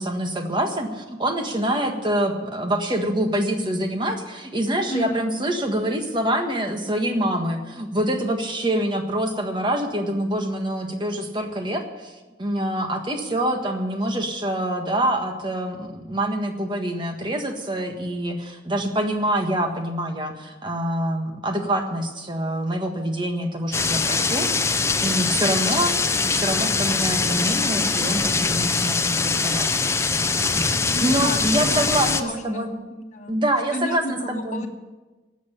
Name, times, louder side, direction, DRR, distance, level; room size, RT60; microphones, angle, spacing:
voice 1, 0.0-12.1 12.4-29.7 31.0-32.7 33.3-34.6, right 1 dB, 25° right, 4 dB, 1.5 m, -25 dB
voice 2, 4.9-5.3 30.9-33.4 33.7-34.7, left 1 dB, 40° left, 2 dB, 1.7 m, -32 dB
sound 1, 23.7-32.2, left 4 dB, 15° left, 0.5 m, -22 dB
12.5 x 8.0 x 10.0 m, 1.2 s
head